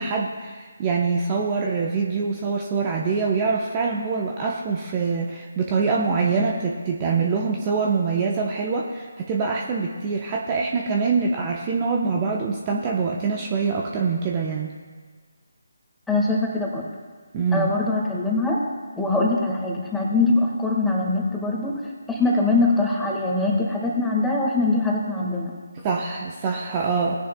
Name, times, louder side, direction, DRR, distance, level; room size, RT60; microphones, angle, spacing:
voice 1, 0.0-14.7 17.3-17.7 25.8-27.2, right 4 dB, 25° right, -1 dB, 0.9 m, -24 dB
voice 2, 16.1-16.8 17.5-18.6 18.9-21.8 22.1-25.5, left 2 dB, 5° left, -3 dB, 1.7 m, -22 dB
19.0 x 10.0 x 2.3 m, 1.5 s
figure-of-eight pair, 150°, 0 cm